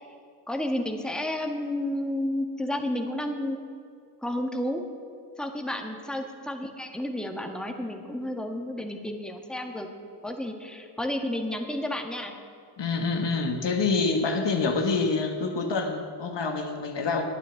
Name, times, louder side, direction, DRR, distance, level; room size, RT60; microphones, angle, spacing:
voice 1, 0.5-3.7 4.2-4.8 5.4-9.9 10.2-12.3, left 1 dB, ahead, 3 dB, 1.6 m, -31 dB
voice 2, 12.8-17.3, left 4 dB, 60° left, 4 dB, 1.4 m, -26 dB
9.4 x 9.2 x 7.1 m, 2.3 s
supercardioid pair, 40°, 48 cm